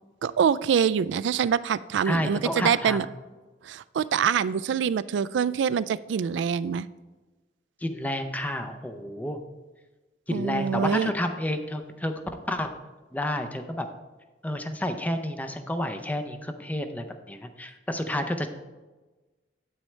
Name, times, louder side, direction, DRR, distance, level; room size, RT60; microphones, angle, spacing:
voice 1, 0.2-3.1 3.6-6.9 10.3-11.1, right 7 dB, 90° right, 17 dB, 0.3 m, -25 dB
voice 2, 2.1-3.0 7.8-9.4 10.3-12.1 12.5-12.7 13.1-13.9 14.4-18.5, left 1 dB, 10° left, 6 dB, 0.5 m, -30 dB
9.0 x 8.3 x 3.3 m, 1.2 s
head